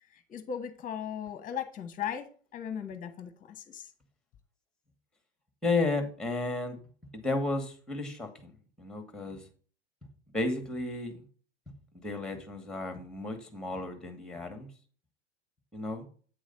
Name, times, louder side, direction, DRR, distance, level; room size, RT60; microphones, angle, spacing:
voice 1, 0.1-3.9, left 8 dB, 25° left, 1.0 m, -38 dB
voice 2, 5.6-6.8 7.1-8.5 8.8-9.4 10.3-11.2 11.7-14.7 15.7-16.1, left 2 dB, ahead, 1.3 m, -33 dB
8.7 x 3.1 x 5.3 m
hypercardioid pair, 100°, 33 cm